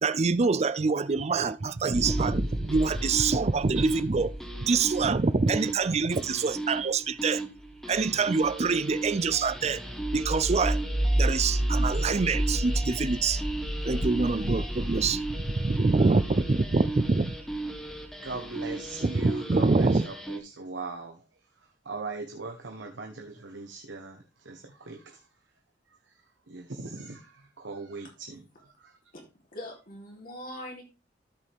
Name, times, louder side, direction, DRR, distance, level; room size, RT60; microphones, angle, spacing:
voice 1, 0.0-4.3 4.6-7.4 7.9-9.8 10.1-10.8 11.2-13.4 13.8-17.3 19.0-20.0, right 4 dB, 35° right, 0.5 m, -25 dB
sound 1, 1.9-20.4, right 1 dB, ahead, 1.3 m, -32 dB
voice 2, 18.2-21.2 21.8-25.2 26.5-28.9, right 3 dB, 80° right, 1.2 m, -40 dB
voice 3, 29.5-30.8, left 1 dB, 50° left, 3.4 m, -41 dB
13.5 x 5.4 x 3.5 m
head